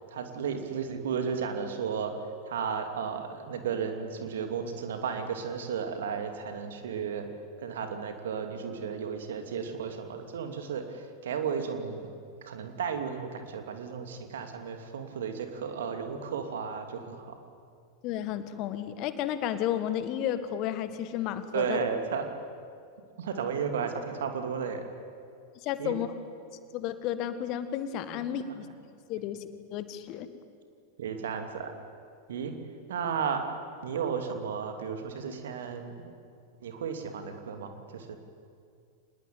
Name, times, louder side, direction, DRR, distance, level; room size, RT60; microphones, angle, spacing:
voice 1, 0.0-2.1 2.5-7.3 7.6-12.0 12.4-17.4 21.5-22.3 23.2-24.8 25.8-25.9 28.1-28.7 31.0-31.7 32.3-32.5 32.9-33.4 33.8-35.9 36.6-38.2, right 6 dB, 60° right, 6 dB, 2.7 m, -34 dB
voice 2, 18.0-21.8 25.6-26.1 26.7-28.7 29.1-30.3, left 10 dB, 40° left, 11 dB, 1.6 m, -32 dB
25.5 x 20.5 x 9.3 m, 2.3 s
figure-of-eight pair, 90°, 0 cm